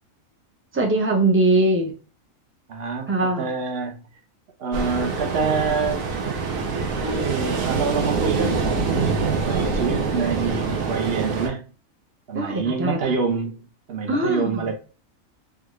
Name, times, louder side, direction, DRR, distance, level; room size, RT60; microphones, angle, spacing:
voice 1, 0.7-1.9 3.1-3.5 12.3-13.0 14.1-14.7, right 2 dB, 15° right, 0.5 m, -21 dB
voice 2, 2.7-4.0 4.6-6.1 7.0-11.6 12.3-14.7, right 5 dB, 50° right, 0.9 m, -27 dB
Ocean, 4.7-11.5, right 4 dB, 80° right, 1.2 m, -25 dB
3.7 x 2.3 x 3.0 m
omnidirectional pair, 1.4 m